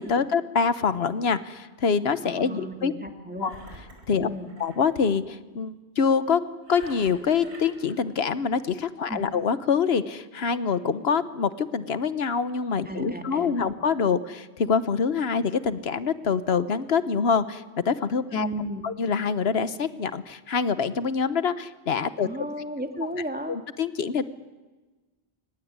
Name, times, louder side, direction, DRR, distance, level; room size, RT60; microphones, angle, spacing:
voice 1, 0.0-2.9 3.4-3.6 4.1-4.3 4.6-6.4 6.7-18.5 18.8-22.3 23.5-24.3, left 6 dB, 70° left, 13 dB, 1.3 m, -25 dB
voice 2, 2.2-3.5 4.2-4.5 9.1-9.2 12.9-13.5 18.3-18.8 22.2-23.6, right 1 dB, 10° right, 5 dB, 2.3 m, -34 dB
Engine, 3.4-4.9 6.6-7.9, right 1 dB, 90° right, 5.5 m, -47 dB
23.5 x 20.0 x 9.7 m, 1.2 s
omnidirectional pair, 1.1 m